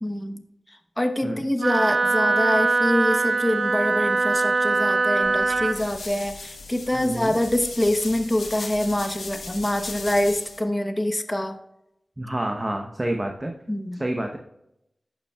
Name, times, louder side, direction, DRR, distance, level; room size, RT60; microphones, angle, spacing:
voice 1, 0.0-0.4 1.0-11.6 13.7-14.0, left 1 dB, 20° left, 6 dB, 0.9 m, -25 dB
Wind instrument woodwind instrument, 1.6-5.8, right 3 dB, 75° right, 0.8 m, -22 dB
sound 1, 5.2-10.6, left 3 dB, 90° left, 1.2 m, -38 dB
voice 2, 6.9-7.4 12.2-13.5 13.9-14.4, right 1 dB, 25° right, 3 dB, 0.9 m, -28 dB
11.0 x 7.2 x 2.3 m, 0.82 s
cardioid pair, 45°, 0 cm